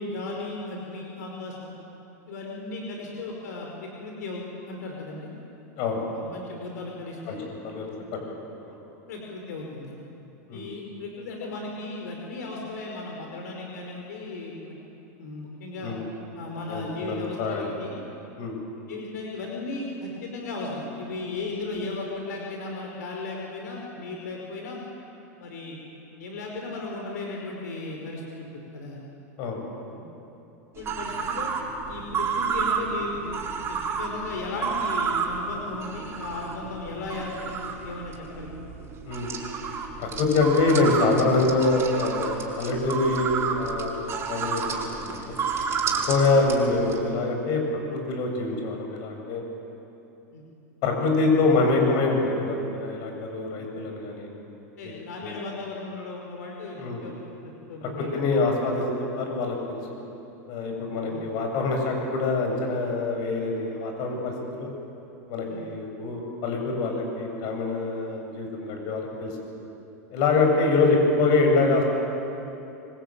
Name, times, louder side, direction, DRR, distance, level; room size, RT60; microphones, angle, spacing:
voice 1, 0.0-1.7 2.3-5.3 6.1-7.4 9.1-9.9 10.5-14.8 15.2-15.9 16.4-17.9 18.9-24.8 25.4-25.8 26.2-29.0 29.9-30.0 30.8-31.5 31.9-33.4 33.7-38.5 46.2-46.3 50.3-50.4 54.8-57.1 57.7-58.5 61.0-61.2 65.5-65.7, left 2 dB, 85° left, 0 dB, 5.2 m, -36 dB
voice 2, 7.3-7.9 8.6-8.7 10.5-10.7 15.8-16.0 16.7-17.7 18.4-18.6 29.4-29.6 39.0-39.3 40.0-45.4 46.0-47.6 47.9-49.4 50.8-54.3 54.8-54.9 55.2-55.3 56.8-57.1 57.8-60.0 60.5-64.7 65.3-69.3 70.1-71.8, left 3 dB, 55° left, 2 dB, 7.9 m, -25 dB
sound 1, 30.8-47.0, right 5 dB, 30° right, 5.1 m, -31 dB
25.0 x 25.0 x 9.2 m, 2.9 s
supercardioid pair, 120°, 9 cm